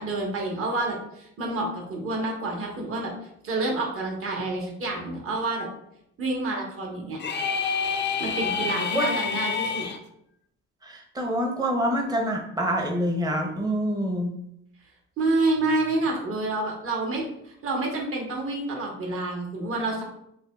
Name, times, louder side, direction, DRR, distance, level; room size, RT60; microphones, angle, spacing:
voice 1, 0.0-3.1 3.4-5.7 6.2-7.2 8.2-9.9 15.2-20.0, right 2 dB, 45° right, -1 dB, 1.1 m, -28 dB
sound 1, 7.2-10.0, left 5 dB, 35° left, 0.4 m, -27 dB
voice 2, 11.1-14.3, equal, 15° right, 1 dB, 0.7 m, -26 dB
6.3 x 2.2 x 2.3 m, 0.76 s
cardioid pair, 90°, 30 cm